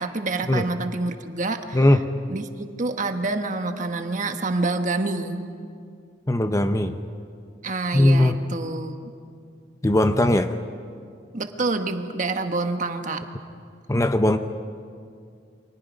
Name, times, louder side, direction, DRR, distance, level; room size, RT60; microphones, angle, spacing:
voice 1, 0.0-1.8 2.3-2.4 2.8-5.5 7.6-9.0 11.3-13.2, right 3 dB, 45° right, 6 dB, 1.4 m, -27 dB
voice 2, 1.7-2.1 6.3-6.9 7.9-8.4 9.8-10.6 13.9-14.4, left 1 dB, 15° left, 8 dB, 0.7 m, -19 dB
29.5 x 25.0 x 5.2 m, 2.3 s
head